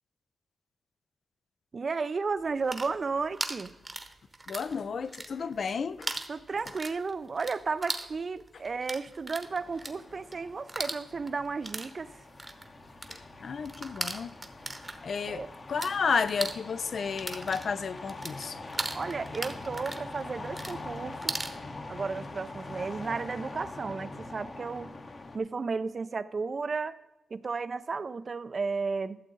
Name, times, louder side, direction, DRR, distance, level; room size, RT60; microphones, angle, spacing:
voice 1, 1.7-3.8 6.3-12.1 15.3-15.5 18.9-21.3 21.9-25.0 25.3-27.0 27.3-29.2, right 4 dB, 40° right, 0.4 m, -33 dB
sound 1, 2.5-4.7 5.0-5.7 6.0-15.9 16.2-21.6, right 2 dB, 20° right, 0.9 m, -38 dB
voice 2, 4.5-6.1 13.1-14.3 15.0-15.4 15.7-18.6, left 5 dB, 60° left, 0.5 m, -32 dB
sound 2, 9.4-25.4, left 2 dB, 40° left, 1.0 m, -44 dB
12.5 x 7.4 x 3.9 m
wide cardioid pair, 120°, 0 cm